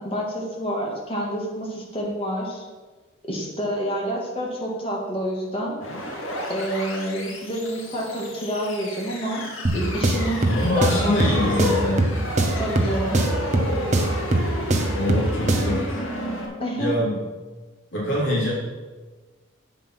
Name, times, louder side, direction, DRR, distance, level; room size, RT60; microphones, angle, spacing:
voice 1, 0.0-2.6 3.3-5.8 6.5-9.4 9.7-10.5 10.8-11.6 12.6-13.2 16.6-16.9, equal, 25° left, -2 dB, 2.0 m, -28 dB
sound 1, 5.8-16.4, left 1 dB, 85° left, 2.3 m, -32 dB
sound 2, 9.6-15.9, right 1 dB, 35° right, 0.9 m, -23 dB
voice 2, 10.4-12.1 14.9-16.0 16.8-17.2 17.9-18.5, left 1 dB, 65° left, -6 dB, 3.5 m, -24 dB
7.9 x 7.3 x 5.9 m, 1.3 s
head